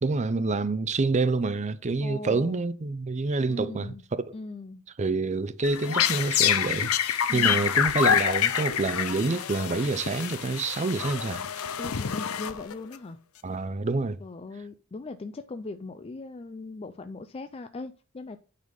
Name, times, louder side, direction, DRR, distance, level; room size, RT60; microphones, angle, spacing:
voice 1, 0.0-4.3 5.0-11.4 13.4-14.2, right 3 dB, 35° right, 0.5 m, -27 dB
voice 2, 2.0-2.6 3.5-4.0 4.3-4.8 7.3-7.7 11.8-13.2 14.2-18.4, left 3 dB, 25° left, 0.4 m, -39 dB
sound 1, 5.6-12.9, left 9 dB, 80° left, 0.6 m, -27 dB
9.4 x 4.1 x 5.2 m
head